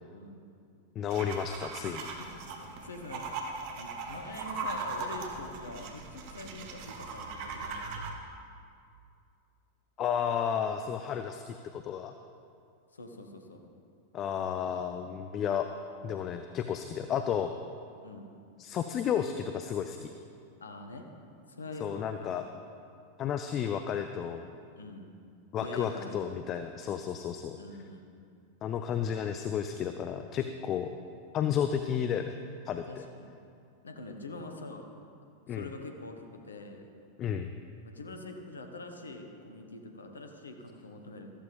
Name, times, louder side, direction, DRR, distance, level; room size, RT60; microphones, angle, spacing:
voice 1, 0.1-0.4 2.0-2.1 2.5-3.4 3.8-8.0 12.9-13.6 18.0-18.3 20.6-21.1 21.5-22.5 24.8-25.1 25.6-26.2 27.6-28.0 32.9-33.3 33.8-34.9 35.5-36.9 37.8-41.3, left 2 dB, 75° left, 4 dB, 1.4 m, -44 dB
voice 2, 1.0-2.1 10.0-12.1 14.1-15.7 16.0-17.5 18.6-20.1 21.8-22.4 23.2-24.5 25.5-27.6 28.6-30.9 31.3-32.4 32.7-33.0 35.5-35.7 37.2-37.5, left 8 dB, 30° left, 8 dB, 0.5 m, -32 dB
sound 1, 1.1-8.1, right 4 dB, 45° right, 1.4 m, -39 dB
14.5 x 14.0 x 3.6 m, 2.4 s
figure-of-eight pair, 90°, 0 cm